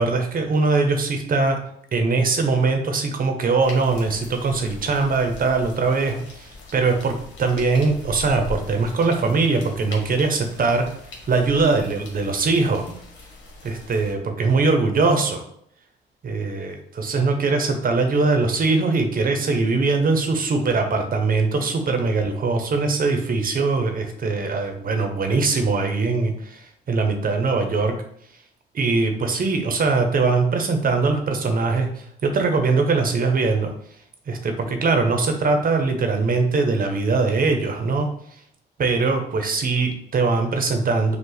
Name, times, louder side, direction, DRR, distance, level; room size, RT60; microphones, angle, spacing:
voice 1, 0.0-1.6 1.9-7.1 7.4-10.9 11.3-12.9 13.6-15.4 16.2-27.9 28.7-33.7 34.3-38.1 38.8-41.2, right 3 dB, 45° right, 5 dB, 0.8 m, -21 dB
sound 1, 3.6-14.1, left 3 dB, 75° left, 1.4 m, -41 dB
5.4 x 2.4 x 3.9 m, 0.68 s
cardioid pair, 90°, 20 cm